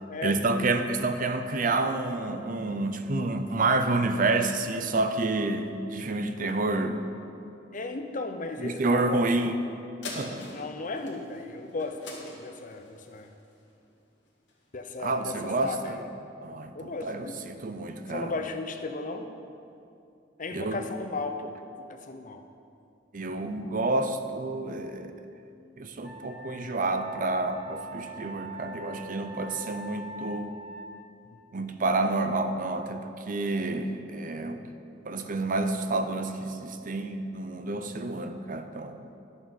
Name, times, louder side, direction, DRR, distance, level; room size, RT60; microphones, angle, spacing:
voice 1, 0.2-7.0 8.6-9.6 10.1-10.5 15.0-16.0 16.4-18.3 20.5-20.8 23.1-25.1 25.8-30.5 31.5-34.6 35.0-39.0, right 2 dB, 50° right, 8 dB, 0.7 m, -29 dB
voice 2, 7.7-9.4 10.5-13.3 14.7-16.0 16.7-17.4 18.1-19.3 20.4-22.4 34.6-34.7, left 3 dB, 45° left, 5 dB, 0.8 m, -36 dB
sound 1, 10.0-14.8 15.3-15.4, left 2 dB, 70° left, 1.8 m, -44 dB
Wind instrument woodwind instrument, 26.0-30.9, right 2 dB, 5° left, 1.0 m, -43 dB
11.5 x 5.7 x 7.2 m, 2.6 s
head